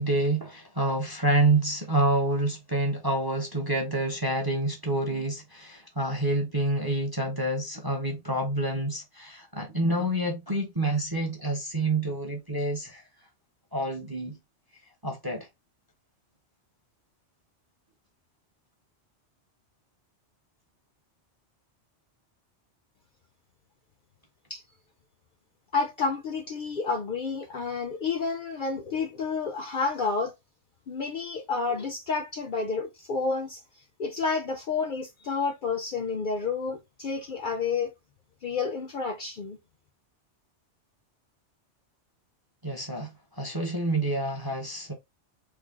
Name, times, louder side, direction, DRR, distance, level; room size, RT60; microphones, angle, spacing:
voice 1, 0.0-13.0 13.7-14.4 15.0-15.5 42.6-43.1 43.4-44.9, right 2 dB, 25° right, 0.5 m, -27 dB
voice 2, 25.7-30.3 30.9-33.6 34.0-37.9 38.4-39.6, left 4 dB, 60° left, 0.5 m, -30 dB
3.3 x 2.1 x 3.5 m
omnidirectional pair, 1.2 m